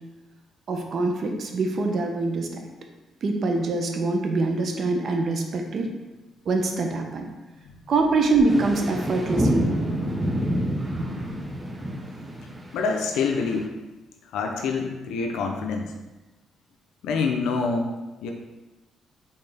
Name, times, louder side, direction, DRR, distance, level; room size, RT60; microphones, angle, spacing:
voice 1, 0.7-2.5 3.2-5.9 6.5-7.2 7.9-9.8, right 3 dB, 55° right, 3 dB, 0.7 m, -24 dB
sound 1, 8.5-13.7, equal, 20° right, 0.6 m, -28 dB
voice 2, 12.7-13.8 14.3-15.9 17.0-17.9 18.2-18.3, left 4 dB, 85° left, 2 dB, 0.5 m, -26 dB
4.4 x 3.5 x 3.4 m, 1.1 s
cardioid pair, 90°, 0 cm